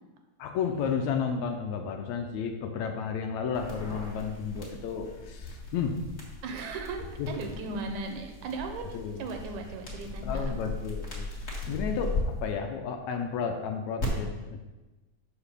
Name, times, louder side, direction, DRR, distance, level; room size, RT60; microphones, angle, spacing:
voice 1, 0.4-6.0 7.2-7.8 8.9-9.3 10.2-14.6, left 6 dB, 75° left, 4 dB, 1.9 m, -33 dB
sound 1, 3.5-12.2 14.0-14.1, left 3 dB, 30° left, 1.5 m, -38 dB
voice 2, 6.4-10.7, right 3 dB, 75° right, 4 dB, 2.2 m, -37 dB
5.8 x 5.1 x 6.7 m, 1.1 s
omnidirectional pair, 3.5 m